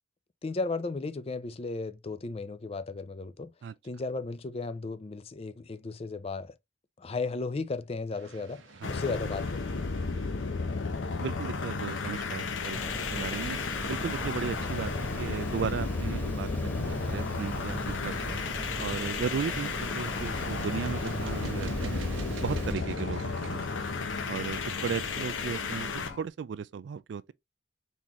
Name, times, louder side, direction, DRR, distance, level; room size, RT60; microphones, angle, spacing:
voice 1, 0.4-3.5 3.8-6.5 7.0-8.6 8.9-9.9, left 3 dB, 30° left, 0.4 m, -35 dB
sound 1, 8.1-26.2, right 3 dB, 85° right, 0.9 m, -50 dB
sound 2, 8.8-26.2, left 4 dB, 80° left, 0.7 m, -33 dB
voice 2, 11.2-12.8 13.1-13.6 13.9-16.5 16.7-18.3 18.8-22.0 22.4-23.8 24.3-25.9 26.2-27.3, right 6 dB, 65° right, 0.3 m, -35 dB
Water, 12.7-22.7, right 1 dB, 10° left, 1.4 m, -39 dB
4.2 x 3.6 x 2.9 m
head